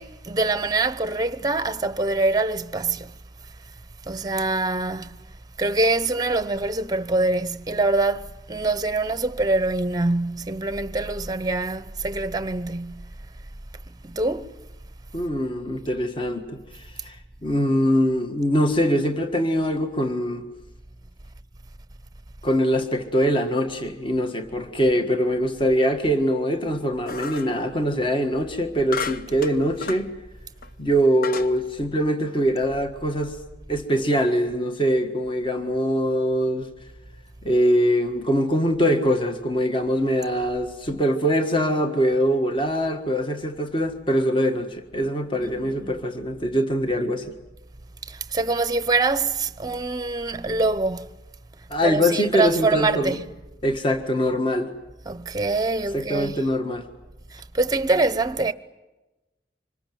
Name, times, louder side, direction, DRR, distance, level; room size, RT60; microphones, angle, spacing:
voice 1, 0.0-3.1 4.0-5.2 5.6-13.1 14.0-14.5 45.4-46.0 48.1-51.1 51.8-53.2 55.0-56.4 57.3-58.5, right 3 dB, 20° right, 0.8 m, -24 dB
voice 2, 15.1-17.2 17.4-20.5 22.4-30.1 30.8-33.4 33.7-36.7 37.4-47.2 51.7-53.2 53.6-54.7 55.9-56.8, equal, 30° left, 1.6 m, -23 dB
sound 1, 27.1-27.6 28.9-30.1 30.6-30.7 31.2-31.6, left 5 dB, 55° left, 0.8 m, -32 dB
25.5 x 21.0 x 9.2 m
head